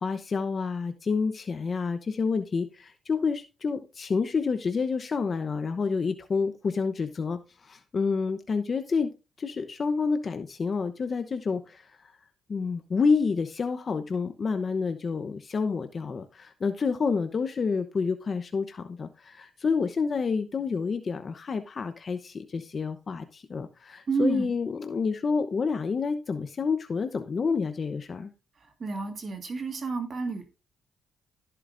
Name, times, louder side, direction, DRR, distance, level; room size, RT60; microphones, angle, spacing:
voice 1, 0.0-9.1 9.4-11.9 12.5-28.3, left 5 dB, 40° left, 8 dB, 0.8 m, -29 dB
voice 2, 24.1-24.5 28.8-30.5, right 4 dB, 40° right, 5 dB, 1.9 m, -30 dB
14.5 x 7.8 x 2.6 m, 0.30 s
cardioid pair, 90°, 0 cm